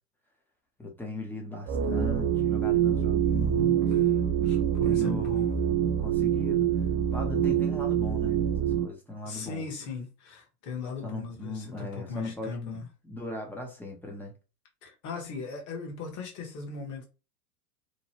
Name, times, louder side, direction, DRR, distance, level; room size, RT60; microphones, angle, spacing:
voice 1, 0.8-3.8 4.8-5.4 6.0-6.7 7.1-9.6 11.0-14.3, left 2 dB, 5° left, 0.5 m, -39 dB
sound 1, 1.7-8.9, right 9 dB, 45° right, 0.6 m, -25 dB
voice 2, 3.8-5.5 9.2-12.9 14.8-17.1, left 4 dB, 35° left, 1.1 m, -39 dB
3.0 x 2.1 x 2.8 m
hypercardioid pair, 105°, 49 cm